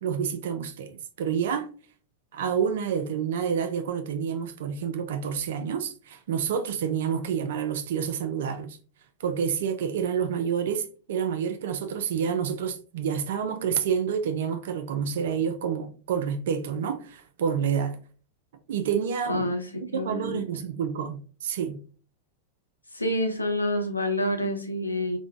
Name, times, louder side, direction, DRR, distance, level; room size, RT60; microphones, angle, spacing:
voice 1, 0.0-1.7 2.3-8.8 9.2-18.0 18.7-19.5 19.9-21.8, right 7 dB, 60° right, 0.3 m, -28 dB
voice 2, 19.3-20.4 22.9-25.2, left 1 dB, 90° left, 0.5 m, -28 dB
3.6 x 2.1 x 2.4 m
figure-of-eight pair, 90°, 0 cm